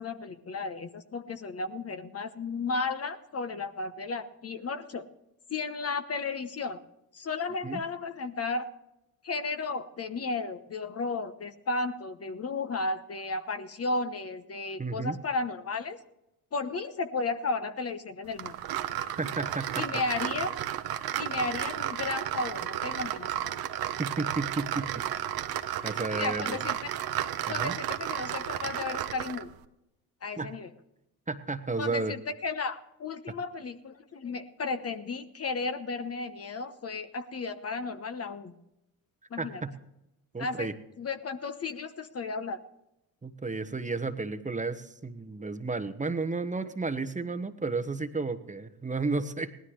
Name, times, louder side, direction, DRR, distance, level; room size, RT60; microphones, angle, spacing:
voice 1, 0.0-5.1 5.5-6.8 7.1-8.7 9.2-16.0 16.5-18.6 19.7-20.5 21.2-23.5 25.9-26.9 27.5-29.5 30.2-30.7 31.8-38.6 39.3-39.6 40.4-40.7 41.0-42.6, left 3 dB, 35° left, 9 dB, 1.1 m, -34 dB
voice 2, 14.8-15.2 19.0-19.8 24.0-25.0 25.8-26.6 27.5-27.7 30.4-30.5 31.3-32.1 39.4-39.7 40.3-40.7 43.2-49.5, right 3 dB, 15° right, 7 dB, 1.2 m, -32 dB
sound 1, 18.4-29.5, right 11 dB, 55° right, 1.0 m, -33 dB
19.0 x 13.0 x 3.2 m, 0.87 s
hypercardioid pair, 55°, 43 cm